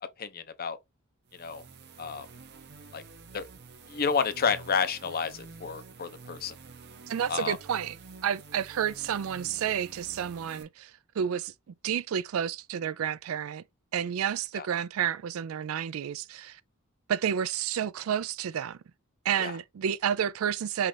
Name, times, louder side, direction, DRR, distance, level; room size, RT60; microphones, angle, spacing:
voice 1, 0.2-0.8 1.3-1.6 2.0-2.3 2.9-3.0 3.3-3.5 3.9-6.5 7.3-7.6 14.6-14.7 19.4-19.5, left 6 dB, 45° left, 0.6 m, -30 dB
sound 1, 1.3-10.6, right 4 dB, 50° right, 0.8 m, -49 dB
voice 2, 7.1-8.0 8.2-11.5 11.8-13.6 13.9-16.6 17.1-18.8 19.2-20.9, right 8 dB, 70° right, 0.4 m, -30 dB
5.6 x 2.5 x 3.3 m
head